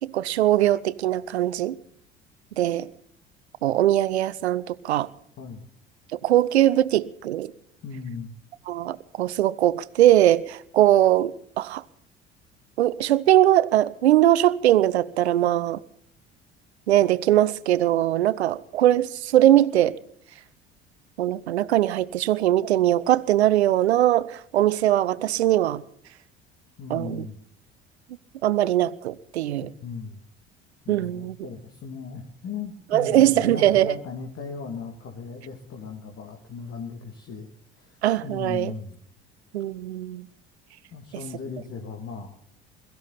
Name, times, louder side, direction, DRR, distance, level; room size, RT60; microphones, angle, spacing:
voice 1, 0.0-1.8 2.6-2.9 3.6-5.1 6.2-7.5 8.7-11.8 12.8-15.8 16.9-20.0 21.2-25.8 26.9-27.2 28.4-29.7 30.9-31.4 32.9-33.9 38.0-38.7 39.5-40.3, right 13 dB, 75° right, 0.8 m, -21 dB
voice 2, 5.4-5.7 7.8-8.3 26.8-27.4 29.6-30.2 30.8-37.5 37.7-39.0 40.9-42.3, left 5 dB, 40° left, 2.7 m, -37 dB
22.0 x 14.0 x 4.2 m
figure-of-eight pair, 60°, 33 cm